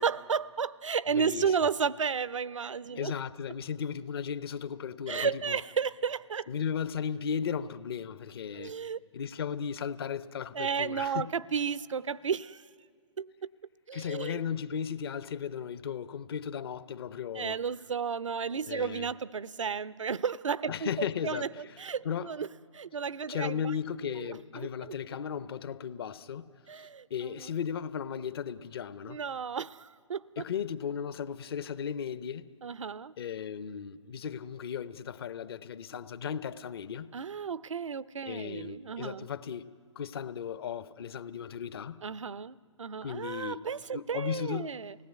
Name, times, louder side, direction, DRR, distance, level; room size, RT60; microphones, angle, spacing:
voice 1, 0.0-3.1 5.1-6.5 8.5-9.0 10.5-12.6 13.2-13.3 13.9-14.4 17.3-22.5 22.7-23.7 24.0-24.9 26.7-27.5 29.1-30.4 32.6-33.1 37.1-39.3 42.0-45.0, right 6 dB, 75° right, 0.6 m, -33 dB
voice 2, 1.1-1.5 2.9-5.6 6.5-8.8 9.1-11.3 13.9-17.6 18.7-19.1 20.7-21.5 22.0-22.3 23.3-26.5 27.1-29.2 30.4-32.5 33.2-37.1 38.2-39.7 40.0-42.0 43.0-43.6 43.9-44.7, left 7 dB, 50° left, 0.8 m, -36 dB
28.5 x 18.0 x 9.5 m
figure-of-eight pair, 125°, 16 cm